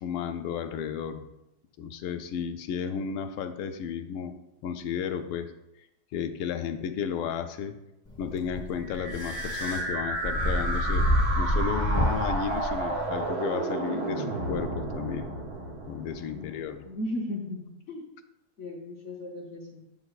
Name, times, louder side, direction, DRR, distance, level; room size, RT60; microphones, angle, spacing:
voice 1, 0.0-1.3 1.8-4.3 4.6-5.5 6.1-7.8 8.2-11.1 11.4-15.3 15.8-16.9, left 7 dB, 80° left, 8 dB, 1.5 m, -33 dB
sound 1, 8.1-13.3, equal, 20° left, 2.0 m, -28 dB
sound 2, 8.8-16.7, right 2 dB, 70° right, 2.1 m, -32 dB
voice 2, 16.8-18.0 18.6-19.8, left 1 dB, 50° left, -1 dB, 0.9 m, -36 dB
8.6 x 7.9 x 2.4 m, 0.89 s
omnidirectional pair, 2.3 m